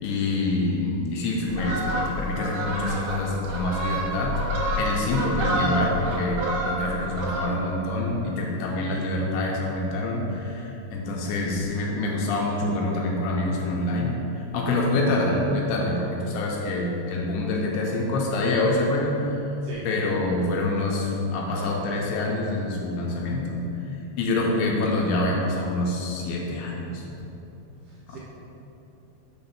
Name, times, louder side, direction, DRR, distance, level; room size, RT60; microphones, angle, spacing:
voice 1, 0.0-19.5 19.8-23.7 24.2-27.3 28.1-28.2, left 2 dB, 80° left, -2 dB, 2.8 m, -26 dB
Fowl, 1.5-7.8 8.1-8.4, right 1 dB, 70° right, 2.7 m, -29 dB
voice 2, 27.9-28.2, right 4 dB, 90° right, -6 dB, 2.3 m, -41 dB
6.8 x 4.0 x 5.5 m, 3.0 s
omnidirectional pair, 5.4 m